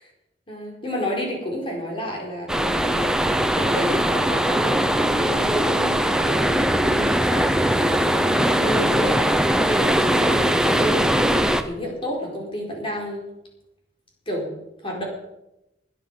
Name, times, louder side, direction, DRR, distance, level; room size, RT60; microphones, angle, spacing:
voice 1, 0.5-3.2 3.5-9.1 9.6-13.2 14.3-14.5 14.8-15.0, equal, 30° left, -1 dB, 4.7 m, -30 dB
Henne beach waves at night, 2.5-11.6, right 1 dB, 5° right, 0.9 m, -20 dB
20.5 x 10.5 x 5.7 m, 0.89 s
head